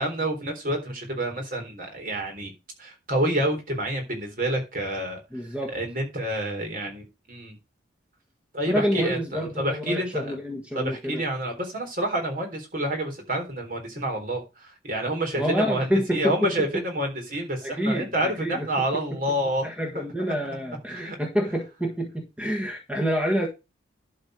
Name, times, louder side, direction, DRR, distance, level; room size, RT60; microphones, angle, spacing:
voice 1, 0.0-2.5 2.8-5.2 5.7-7.6 8.5-10.4 10.7-19.7 19.9-20.0 20.9-21.2, right 1 dB, 45° right, 3.8 m, -28 dB
voice 2, 5.3-5.7 8.7-11.2 15.4-16.8 17.6-18.7 19.6-23.5, equal, 5° right, 1.5 m, -28 dB
11.5 x 4.3 x 6.3 m
head